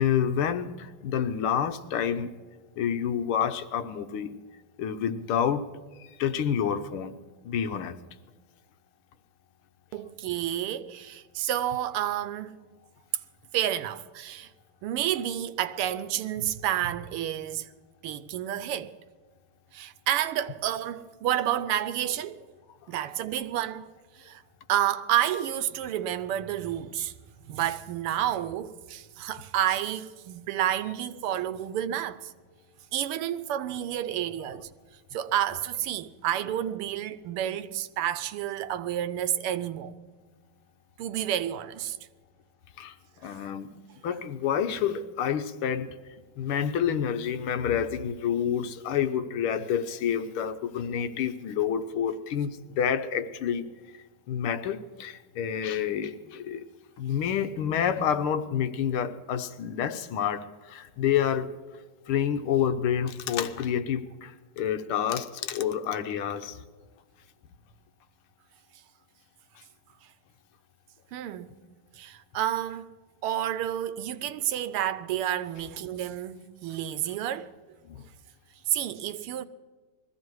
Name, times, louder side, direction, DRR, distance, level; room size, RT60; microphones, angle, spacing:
voice 1, 0.0-2.3 2.8-4.3 4.8-5.7 6.0-7.2 7.4-8.0 42.8-43.0 43.2-43.7 44.0-45.9 46.4-53.7 54.3-56.7 57.0-61.5 62.1-66.6 77.9-78.0, left 8 dB, 80° left, 1.8 m, -28 dB
voice 2, 9.9-12.6 13.5-14.5 14.8-17.7 18.0-18.9 19.7-22.4 22.9-24.4 24.7-27.1 27.5-32.3 32.9-34.7 35.1-40.0 41.0-42.0 43.3-43.4 71.1-71.5 72.0-72.9 73.2-77.5 78.7-79.4, right 11 dB, 85° right, 1.7 m, -30 dB
21.0 x 14.5 x 4.7 m
omnidirectional pair, 2.4 m